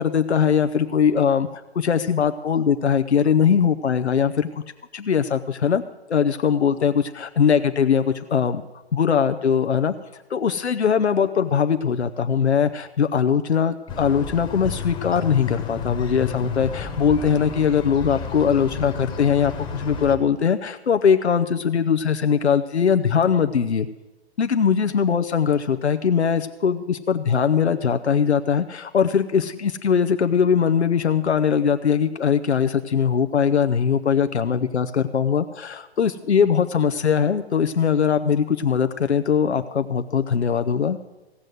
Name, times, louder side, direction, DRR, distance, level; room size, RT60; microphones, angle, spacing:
voice 1, 0.0-4.6 4.9-5.8 6.1-8.6 8.9-9.9 10.3-23.9 24.4-41.0, left 7 dB, 85° left, 8 dB, 0.8 m, -21 dB
sound 1, 13.9-20.2, left 5 dB, 15° left, 1.3 m, -32 dB
15.5 x 7.6 x 8.0 m, 1.1 s
hypercardioid pair, 135°, 33 cm